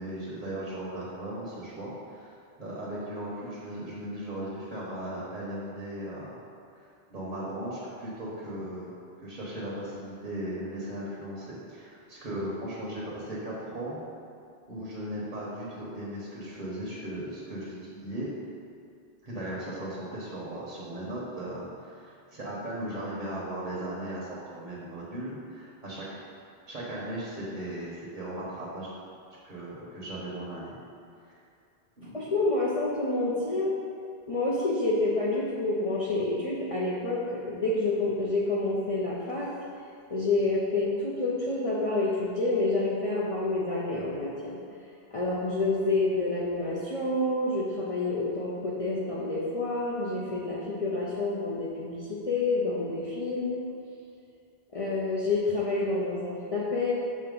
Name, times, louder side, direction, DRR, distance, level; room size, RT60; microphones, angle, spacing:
voice 1, 0.0-6.4 6.7-6.8 7.1-14.0 14.7-18.3 19.2-26.0 26.7-28.9 29.4-30.8 31.3-31.4 32.0-32.2, right 1 dB, 50° right, -7 dB, 1.2 m, -37 dB
voice 2, 32.1-33.7 34.3-37.2 37.5-39.5 40.1-44.6 45.1-53.6 54.7-56.9, left 2 dB, 40° left, -6 dB, 0.6 m, -28 dB
6.4 x 2.9 x 5.3 m, 2.5 s
omnidirectional pair, 1.1 m